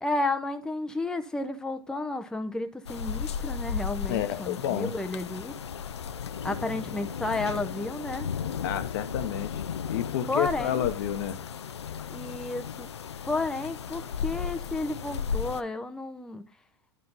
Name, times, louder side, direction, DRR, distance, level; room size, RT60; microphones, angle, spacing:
voice 1, 0.0-5.5 6.4-8.2 10.3-10.9 12.1-12.9 13.2-16.4, left 2 dB, 5° left, 0.7 m, -32 dB
sound 1, 2.9-15.6, left 7 dB, 90° left, 0.5 m, -35 dB
voice 2, 4.1-4.9 8.6-11.4, left 10 dB, 60° left, 1.0 m, -30 dB
11.0 x 5.2 x 3.9 m
hypercardioid pair, 100°, 14 cm